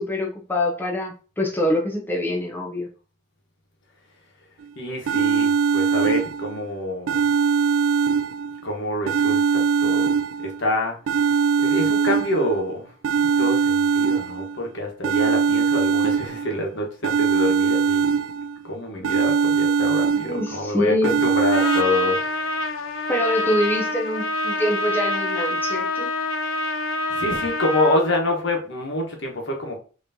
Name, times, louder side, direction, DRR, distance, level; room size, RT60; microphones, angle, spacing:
voice 1, 0.0-2.9 20.1-21.2 23.1-26.1, left 1 dB, 10° left, -1 dB, 0.6 m, -25 dB
sound 1, 4.6-4.7 5.1-6.6 7.1-8.6 9.1-10.6 11.1-12.6 13.0-14.6 15.0-16.6 17.0-18.6 19.0-20.6 21.0-21.8, right 6 dB, 80° right, 0.3 m, -21 dB
voice 2, 4.8-7.2 8.6-10.1 10.4-11.0 11.3-12.9 13.2-18.1 18.6-22.5 27.1-29.8, left 1 dB, 65° left, 1 dB, 1.2 m, -26 dB
Trumpet, 21.5-28.0, left 2 dB, 80° left, 0.6 m, -26 dB
5.6 x 3.0 x 2.7 m, 0.37 s
head